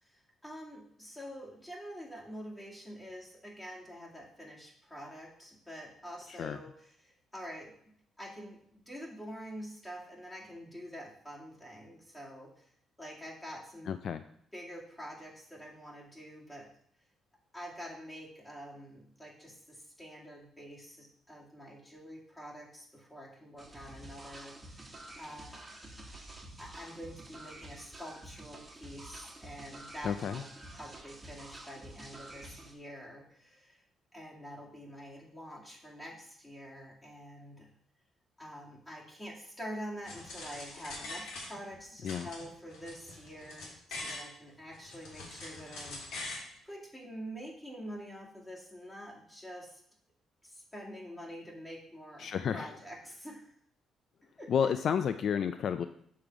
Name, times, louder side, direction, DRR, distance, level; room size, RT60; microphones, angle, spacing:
voice 1, 0.0-7.7 8.2-12.7 13.0-13.9 14.5-16.7 17.5-25.6 26.6-30.5 30.7-33.8 34.1-37.7 38.4-49.8 50.4-53.5 54.4-54.5, equal, 15° left, -3 dB, 2.2 m, -46 dB
voice 2, 13.9-14.2 30.0-30.4 42.0-42.3 52.2-52.7 54.5-55.9, left 7 dB, 60° left, 11 dB, 0.3 m, -31 dB
sound 1, 23.6-32.7, right 1 dB, 15° right, 1.4 m, -49 dB
sound 2, 40.0-41.8 42.1-44.3 44.7-46.5, left 2 dB, 85° left, 2.0 m, -43 dB
6.6 x 3.7 x 5.8 m, 0.66 s
cardioid pair, 90°, 0 cm